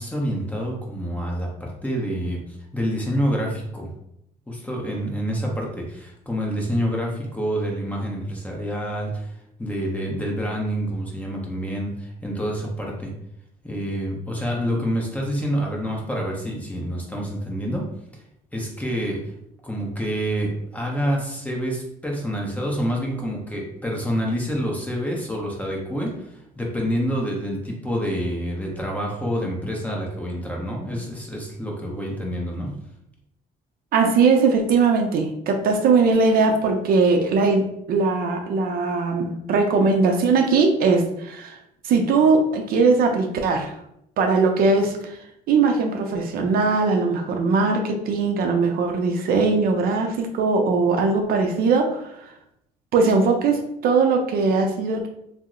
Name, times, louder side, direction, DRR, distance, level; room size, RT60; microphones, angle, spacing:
voice 1, 0.0-2.4 2.7-3.9 4.5-9.3 9.6-13.1 13.6-17.9 18.5-19.3 19.6-32.8, equal, 10° left, -1 dB, 0.7 m, -27 dB
voice 2, 33.9-37.6 37.9-41.6 41.8-43.7 44.2-45.2 45.5-52.1 52.9-55.1, right 4 dB, 65° right, 3 dB, 0.5 m, -20 dB
2.8 x 2.0 x 3.6 m, 0.77 s
cardioid pair, 110°, 17 cm